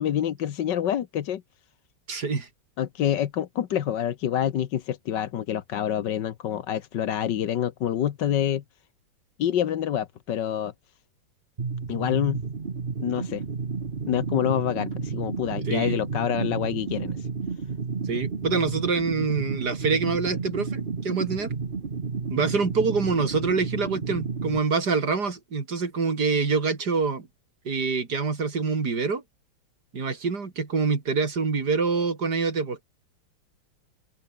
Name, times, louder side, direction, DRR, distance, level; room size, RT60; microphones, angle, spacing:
voice 1, 0.0-1.4 2.8-8.6 9.4-10.7 11.9-12.4 13.0-13.4 14.1-17.3, left 10 dB, 60° left, 1.6 m, -27 dB
voice 2, 2.1-2.5 15.7-16.1 18.1-21.5 22.3-27.3 27.6-29.2 29.9-32.8, right 4 dB, 50° right, 3.4 m, -26 dB
sound 1, 11.6-24.6, right 5 dB, 30° right, 1.3 m, -31 dB
open air
omnidirectional pair, 2.3 m